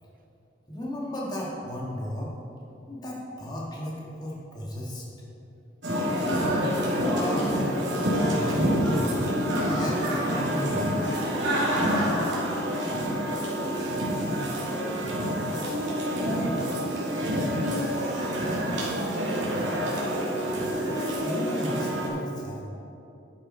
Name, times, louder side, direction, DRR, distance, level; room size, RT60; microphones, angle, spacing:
voice 1, 0.7-2.3 2.9-5.1 6.9-11.0 20.9-22.7, equal, 20° left, -4 dB, 1.9 m, -34 dB
sound 1, 5.8-22.1, equal, 60° right, 2.8 m, -27 dB
voice 2, 15.7-19.4, right 1 dB, 40° right, 6 dB, 0.8 m, -37 dB
10.5 x 9.7 x 4.4 m, 2.8 s
head